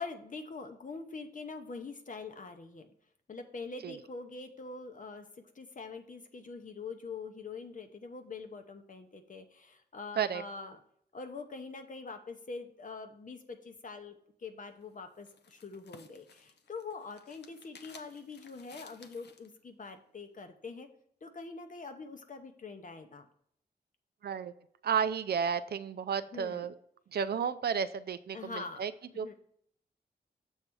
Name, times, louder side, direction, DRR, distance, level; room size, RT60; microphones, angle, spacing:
voice 1, 0.0-2.9 3.3-5.3 5.5-10.8 11.1-20.9 21.2-23.3 26.3-26.7 28.3-28.8 29.2-29.3, left 4 dB, 50° left, 6 dB, 0.7 m, -44 dB
sound 1, 14.7-19.5, left 5 dB, 85° left, 0.6 m, -57 dB
voice 2, 24.2-24.5 24.8-26.7 27.1-28.9 29.2-29.3, right 7 dB, 70° right, 11 dB, 0.4 m, -32 dB
7.2 x 3.3 x 6.1 m, 0.69 s
wide cardioid pair, 90°, 17 cm